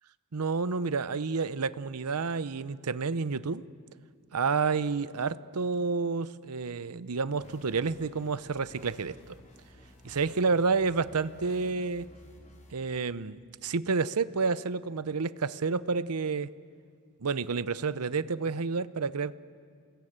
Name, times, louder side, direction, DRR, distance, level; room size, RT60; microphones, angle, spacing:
voice 1, 0.3-3.7 4.3-9.4 10.0-12.0 12.7-16.5 17.2-19.4, right 4 dB, 90° right, 16 dB, 0.8 m, -30 dB
sound 1, 7.4-12.7, equal, 35° left, 5.1 m, -54 dB
29.5 x 20.5 x 8.9 m, 2.1 s
head